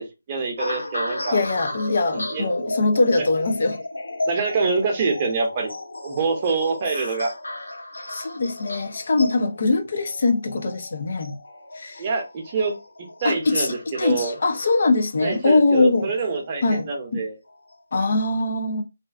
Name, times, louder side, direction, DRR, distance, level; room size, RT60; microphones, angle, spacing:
voice 1, 0.0-1.4 2.1-2.5 3.2-3.3 4.3-5.7 6.0-7.3 12.0-12.7 13.2-14.4 15.2-17.4, right 4 dB, 30° right, 0.7 m, -25 dB
sound 1, 0.6-17.0 17.7-18.0, left 1 dB, 80° left, 1.0 m, -35 dB
voice 2, 1.3-3.8 8.1-11.4 11.8-12.0 13.2-16.1 16.6-17.2 17.9-18.8, left 3 dB, 55° left, 0.4 m, -22 dB
2.4 x 2.2 x 2.3 m
figure-of-eight pair, 150°, 0 cm